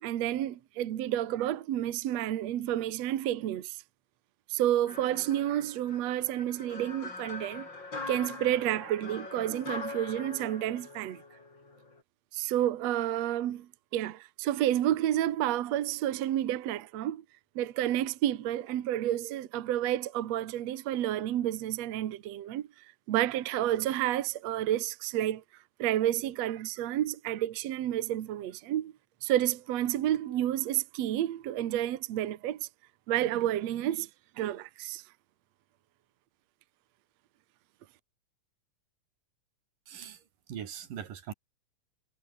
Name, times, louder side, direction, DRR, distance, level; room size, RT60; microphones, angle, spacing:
voice 1, 0.0-3.8 4.5-7.7 8.1-11.2 12.3-17.2 17.6-25.4 25.8-28.9 29.2-32.7 33.1-34.1 34.4-35.0, right 12 dB, 60° right, 2.2 m, -30 dB
sound 1, 4.9-12.0, left 3 dB, 30° left, 5.9 m, -42 dB
voice 2, 39.9-40.2 40.5-41.3, right 9 dB, 85° right, 4.0 m, -40 dB
omnidirectional pair, 3.8 m